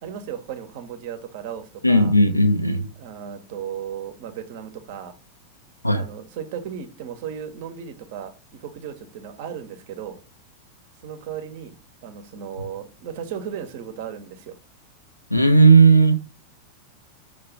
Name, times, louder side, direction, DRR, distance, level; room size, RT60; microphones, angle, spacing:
voice 1, 0.0-2.1 2.9-5.1 5.9-10.2 11.0-11.7 12.0-14.6, right 8 dB, 50° right, 1.3 m, -35 dB
voice 2, 1.8-2.9 5.8-6.1 15.3-16.1, right 3 dB, 85° left, 0.9 m, -15 dB
6.7 x 3.2 x 5.9 m
figure-of-eight pair, 90°, 0 cm